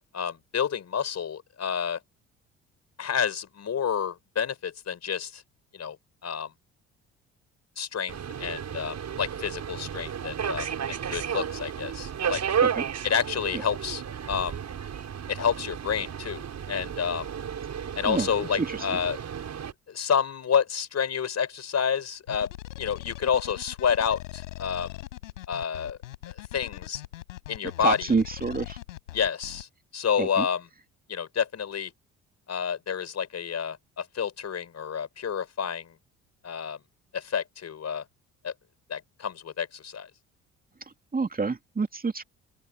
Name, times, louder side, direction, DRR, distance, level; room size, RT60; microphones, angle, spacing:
voice 1, 0.0-2.0 3.0-5.4 5.7-6.0 6.2-6.5 7.8-12.4 13.0-14.6 15.3-17.3 18.0-19.2 19.9-22.5 22.8-24.9 25.5-26.0 26.5-27.0 27.5-28.1 29.1-29.7 29.9-30.7 31.1-31.9 32.5-35.9 36.4-36.8 37.1-38.0 38.4-38.5 38.9-40.1, left 7 dB, 45° left, 5.5 m, -29 dB
Subway metro underground, 8.1-19.7, right 8 dB, 45° right, 7.4 m, -33 dB
sound 1, 22.3-29.6, left 15 dB, 85° left, 4.6 m, -41 dB
voice 2, 27.8-28.8 30.2-30.5 41.1-42.2, right 4 dB, 25° right, 2.6 m, -27 dB
open air
hypercardioid pair, 55°, 37 cm